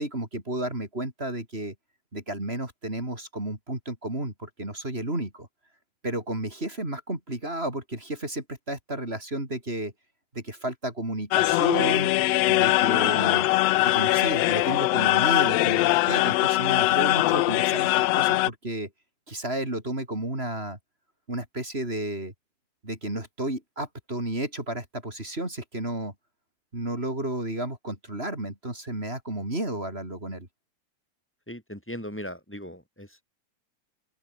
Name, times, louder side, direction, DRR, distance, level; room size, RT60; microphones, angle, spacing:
voice 1, 0.0-1.7 2.1-5.5 6.0-9.9 10.3-12.1 12.5-13.5 13.8-18.9 19.3-20.8 21.3-22.3 22.8-26.1 26.7-30.5, right 1 dB, 20° right, 4.8 m, -32 dB
sound 1, 11.3-18.5, left 18 dB, 80° left, 1.5 m, -22 dB
voice 2, 31.5-33.2, equal, 5° left, 7.2 m, -38 dB
open air
omnidirectional pair, 3.5 m